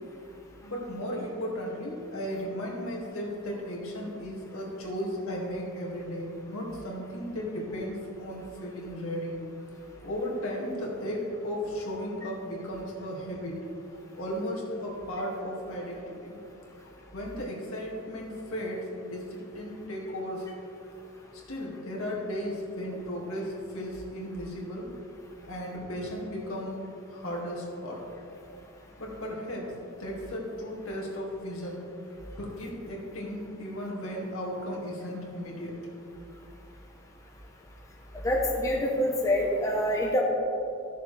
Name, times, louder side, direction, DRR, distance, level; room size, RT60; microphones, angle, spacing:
voice 1, 0.6-9.4 10.0-13.5 14.2-16.4 16.8-20.5 21.5-24.9 25.5-26.8 27.1-28.0 29.0-29.7 30.0-31.8 32.4-35.7, equal, 70° left, -3 dB, 2.2 m, -35 dB
voice 2, 38.2-40.2, left 1 dB, 15° left, -2 dB, 0.9 m, -26 dB
15.0 x 6.8 x 3.3 m, 2.8 s
head